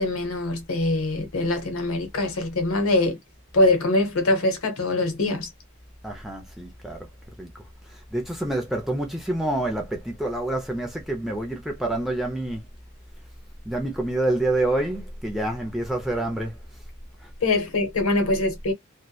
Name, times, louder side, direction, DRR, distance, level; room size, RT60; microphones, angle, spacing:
voice 1, 0.0-3.2 3.5-5.5 17.4-18.7, left 2 dB, 70° left, 0.8 m, -23 dB
voice 2, 6.0-7.1 7.4-7.5 8.1-12.6 13.7-16.6, right 1 dB, ahead, 0.4 m, -27 dB
2.7 x 2.1 x 2.2 m
head